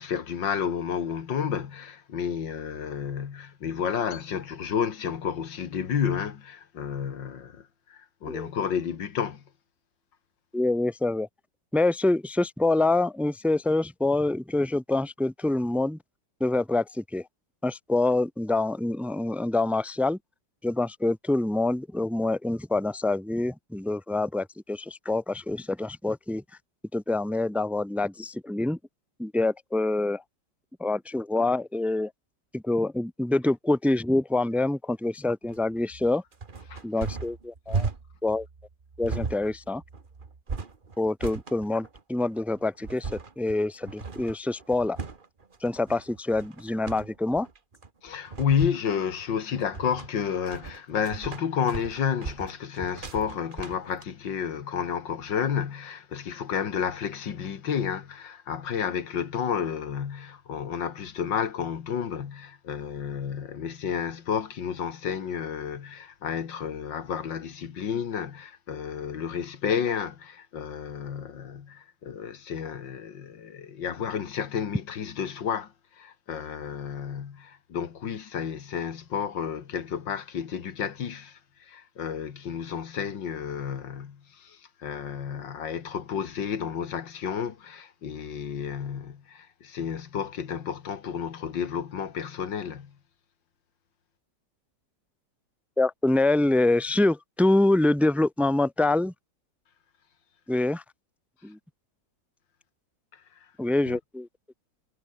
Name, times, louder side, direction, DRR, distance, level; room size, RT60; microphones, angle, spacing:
voice 1, 0.0-7.6 7.9-9.4 36.7-36.8 48.0-81.4 81.7-92.9 103.9-104.0, left 7 dB, 80° left, 2.4 m, -31 dB
voice 2, 10.5-11.3 11.7-16.0 16.4-17.2 17.6-20.2 20.6-26.4 26.9-28.8 29.2-30.2 30.8-32.1 32.5-36.2 36.8-37.9 38.2-38.4 39.0-39.8 41.0-45.0 45.6-47.5 95.8-99.1 100.5-100.8 101.4-101.6 103.6-104.3, left 2 dB, ahead, 1.4 m, -26 dB
sound 1, 35.4-54.0, right 4 dB, 30° right, 1.5 m, -37 dB
omnidirectional pair, 2.0 m